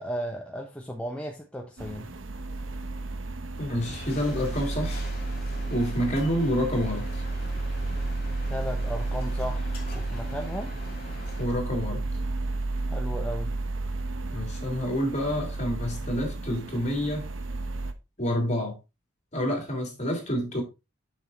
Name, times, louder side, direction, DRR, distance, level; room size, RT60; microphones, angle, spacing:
voice 1, 0.0-2.1 8.5-10.8 12.9-13.5, equal, 5° left, 0.8 m, -35 dB
sound 1, 1.8-17.9, right 2 dB, 70° right, 1.0 m, -32 dB
voice 2, 3.6-5.0 5.7-7.1 11.4-12.1 14.3-17.3 18.2-18.8 19.3-20.6, equal, 35° left, 3.1 m, -28 dB
sound 2, 3.8-11.5, left 2 dB, 50° left, 2.7 m, -44 dB
7.1 x 6.4 x 3.9 m
head